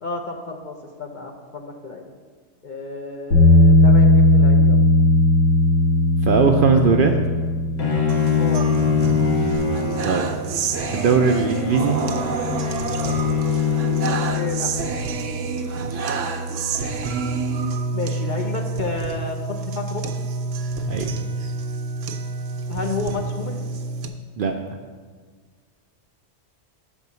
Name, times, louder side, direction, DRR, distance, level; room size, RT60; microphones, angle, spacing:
voice 1, 0.0-2.1 2.6-4.8 6.9-7.0 8.3-8.7 14.3-14.7 17.9-20.1 22.7-23.7, left 3 dB, 45° left, 2 dB, 0.8 m, -31 dB
Bass guitar, 3.3-9.6, left 1 dB, 85° left, 1.8 m, -17 dB
voice 2, 6.2-7.1 10.0-10.3 10.9-12.0 15.8-16.1 20.9-21.1 24.4-24.5, right 5 dB, 60° right, 4 dB, 0.6 m, -19 dB
Bowed string instrument, 7.8-14.8, left 6 dB, 60° left, 1.4 m, -24 dB
sound 1, 8.1-24.1, right 4 dB, 90° right, 1.0 m, -28 dB
7.3 x 4.5 x 6.8 m, 1.5 s
omnidirectional pair, 1.2 m